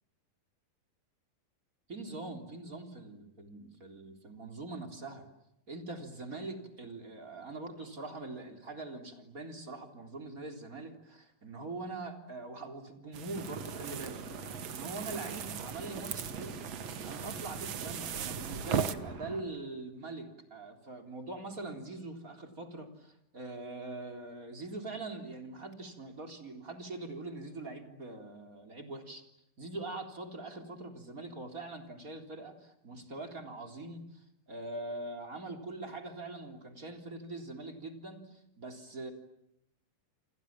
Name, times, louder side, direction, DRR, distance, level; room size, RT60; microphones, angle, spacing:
voice 1, 1.9-5.3 5.7-16.6 17.0-29.2 29.6-39.1, right 2 dB, 25° right, 5 dB, 3.8 m, -43 dB
sound 1, 13.1-18.9, right 8 dB, 75° right, 1.1 m, -38 dB
sound 2, 13.3-19.4, right 4 dB, 45° right, 3.6 m, -44 dB
28.5 x 28.0 x 7.5 m, 0.79 s
omnidirectional pair, 4.1 m